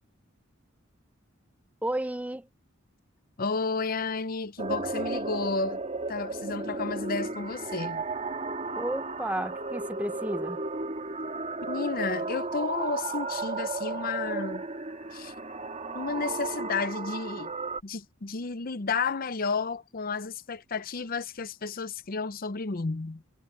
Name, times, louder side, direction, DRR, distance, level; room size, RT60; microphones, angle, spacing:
voice 1, 1.8-2.5 8.7-10.6, right 1 dB, 5° right, 0.6 m, -32 dB
voice 2, 3.4-5.8 6.1-8.0 11.6-14.7 15.1-15.3 15.9-17.5 17.8-23.2, left 4 dB, 45° left, 0.7 m, -32 dB
sound 1, 4.6-17.8, right 3 dB, 35° right, 2.9 m, -34 dB
head